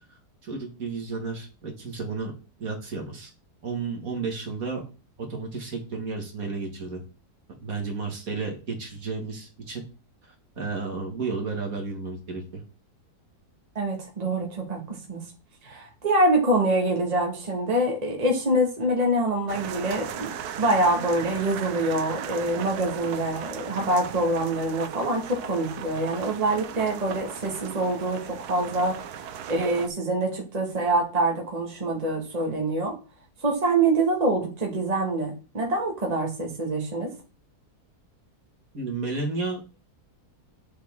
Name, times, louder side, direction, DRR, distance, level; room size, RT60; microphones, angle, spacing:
voice 1, 0.4-2.3 2.6-3.3 3.6-4.8 5.2-7.0 7.6-9.8 10.6-12.6 38.7-39.6, right 4 dB, 60° right, 1 dB, 2.3 m, -32 dB
voice 2, 13.7-15.2 15.6-20.3 20.6-29.2 29.5-32.9 33.4-37.1, right 1 dB, 25° right, 0 dB, 1.7 m, -25 dB
sound 1, 19.5-29.9, right 9 dB, 75° right, 1.2 m, -37 dB
7.1 x 6.9 x 3.6 m, 0.34 s
omnidirectional pair, 1.7 m